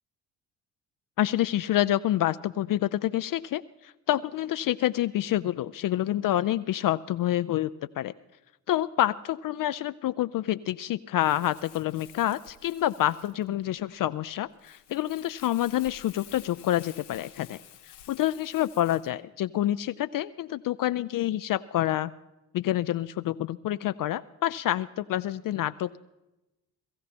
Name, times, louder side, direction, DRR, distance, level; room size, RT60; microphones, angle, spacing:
voice 1, 1.2-8.1 8.7-17.6 18.1-22.1 22.5-26.0, left 13 dB, 45° left, 13 dB, 0.4 m, -27 dB
Crumpling crinkling, 11.2-19.1, left 10 dB, 90° left, 1.0 m, -51 dB
18.0 x 14.5 x 4.2 m, 0.98 s
hypercardioid pair, 50°, 48 cm